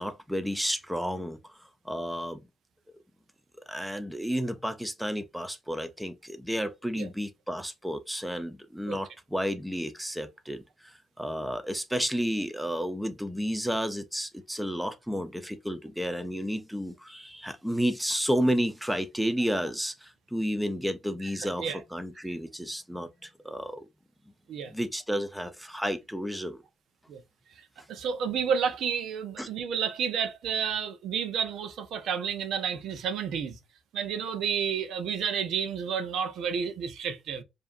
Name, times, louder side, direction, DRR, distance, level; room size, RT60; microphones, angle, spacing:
voice 1, 0.0-2.4 3.7-23.9 24.7-26.6 29.4-29.5, equal, ahead, 0.7 m, -31 dB
voice 2, 27.9-33.6 33.9-37.4, right 7 dB, 75° right, 0.8 m, -30 dB
4.8 x 2.7 x 2.6 m
cardioid pair, 90°, 0 cm